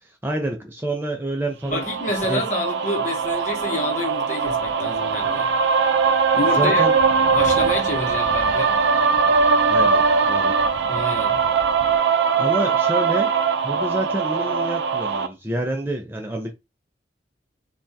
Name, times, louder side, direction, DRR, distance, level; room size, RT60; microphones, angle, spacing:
voice 1, 0.0-1.9 2.2-2.4 6.5-7.0 9.7-10.6 12.4-13.3 13.6-16.5, right 1 dB, 10° right, 0.4 m, -28 dB
sound 1, 1.6-2.4 3.0-4.1 4.4-12.0, left 2 dB, 90° left, 0.6 m, -42 dB
voice 2, 1.7-5.5 6.3-6.8 7.3-8.8 10.9-11.4 11.9-12.0, left 2 dB, 45° left, 0.9 m, -28 dB
sound 2, 1.7-15.3, right 5 dB, 75° right, 0.4 m, -20 dB
3.3 x 2.3 x 2.6 m
head